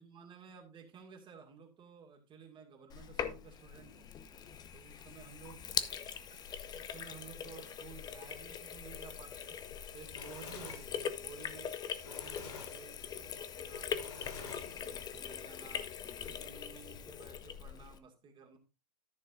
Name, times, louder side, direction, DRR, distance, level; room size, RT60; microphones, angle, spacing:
voice 1, 0.0-4.1 4.7-5.6 6.1-9.6 9.9-13.9 14.2-15.9 16.2-18.6, right 6 dB, 25° right, 3 dB, 2.2 m, -54 dB
Sink (filling or washing), 2.9-18.0, left 8 dB, 20° left, 0.7 m, -42 dB
Fire, 9.8-15.1, left 4 dB, 65° left, 3.5 m, -50 dB
13.5 x 6.4 x 2.6 m, 0.29 s
hypercardioid pair, 120°, 21 cm